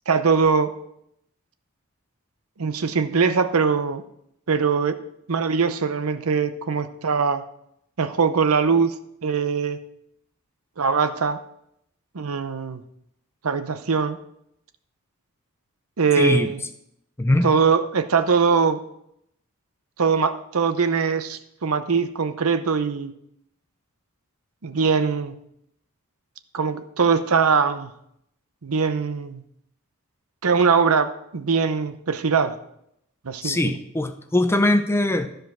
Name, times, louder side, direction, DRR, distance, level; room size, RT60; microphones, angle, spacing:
voice 1, 0.1-0.7 2.6-4.0 4.5-5.0 5.3-7.4 8.0-9.0 9.2-9.8 10.8-11.4 12.1-12.8 13.4-14.2 16.0-16.6 17.4-18.8 20.0-23.1 24.6-25.3 26.5-27.9 28.6-29.4 30.4-32.5 33.2-33.7, right 5 dB, 75° right, 11 dB, 0.7 m, -21 dB
voice 2, 16.2-16.5 17.2-17.5 33.4-35.3, left 1 dB, 10° left, 8 dB, 0.5 m, -21 dB
13.0 x 5.1 x 6.1 m, 0.75 s
head